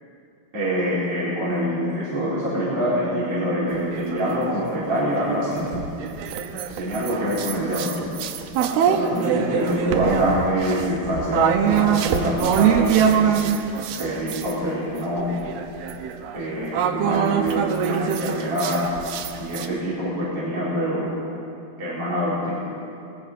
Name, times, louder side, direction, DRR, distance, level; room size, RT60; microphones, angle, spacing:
voice 1, 0.5-5.7 6.5-7.9 8.8-13.4 13.9-15.3 16.3-18.8 19.4-21.1 21.8-22.5, equal, 35° right, -9 dB, 4.9 m, -25 dB
sound 1, 3.7-5.1 5.6-14.5 14.9-19.7, right 8 dB, 75° right, 2.9 m, -24 dB
25.0 x 19.5 x 5.5 m, 2.6 s
omnidirectional pair, 4.6 m